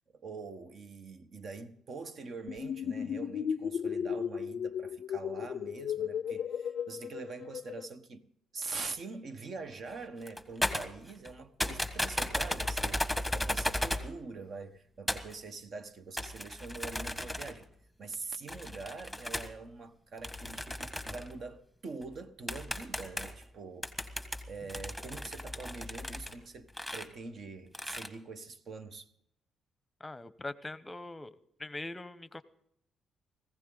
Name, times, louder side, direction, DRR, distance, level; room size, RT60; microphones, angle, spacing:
voice 1, 0.1-17.7 18.0-29.1, right 4 dB, 55° right, 1.3 m, -44 dB
sound 1, 2.5-7.9, left 8 dB, 65° left, 0.5 m, -35 dB
sound 2, 9.9-10.0 10.2-11.3 11.6-14.1 15.1-15.3 16.2-17.6 18.5-19.5 20.2-21.3 22.0-22.1 22.5-23.4 23.8-26.4 26.7-27.1 27.7-28.1, left 1 dB, 5° right, 1.6 m, -35 dB
voice 2, 30.0-31.3 31.6-32.4, left 2 dB, 15° left, 0.9 m, -42 dB
19.0 x 16.0 x 3.9 m
cardioid pair, 90°, 0 cm